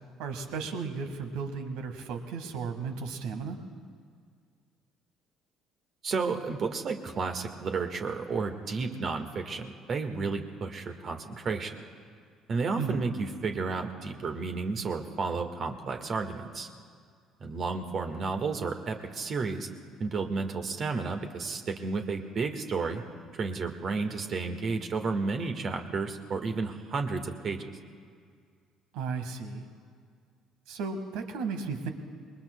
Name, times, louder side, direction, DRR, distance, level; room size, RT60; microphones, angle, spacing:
voice 1, 0.2-3.6 12.8-13.0 28.9-29.6 30.7-31.9, right 5 dB, 65° right, 6 dB, 1.8 m, -34 dB
voice 2, 6.0-11.8 12.5-16.7 17.4-19.7 20.0-23.0 23.3-27.7, right 4 dB, 45° right, 5 dB, 1.6 m, -32 dB
27.5 x 21.5 x 2.3 m, 2.1 s
figure-of-eight pair, 50°, 0 cm